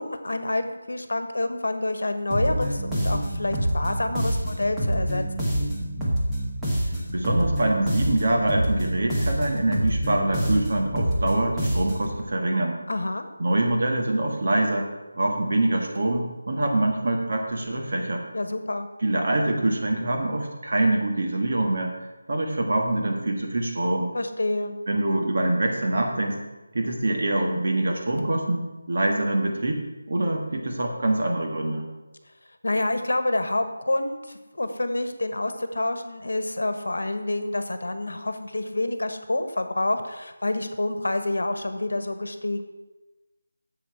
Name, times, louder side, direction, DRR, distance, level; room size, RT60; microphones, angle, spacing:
voice 1, 0.0-5.2 12.9-13.3 18.3-18.9 24.1-24.7 32.6-42.6, left 2 dB, 85° left, 8 dB, 1.2 m, -28 dB
sound 1, 2.3-12.2, equal, 5° right, 0.9 m, -26 dB
voice 2, 7.1-12.8 13.4-14.9 15.1-18.2 19.0-21.9 22.3-24.1 24.9-26.4 26.7-29.8 30.1-31.8, right 1 dB, 40° right, 1 dB, 1.6 m, -24 dB
8.5 x 7.3 x 5.8 m, 1.1 s
figure-of-eight pair, 180°, 0 cm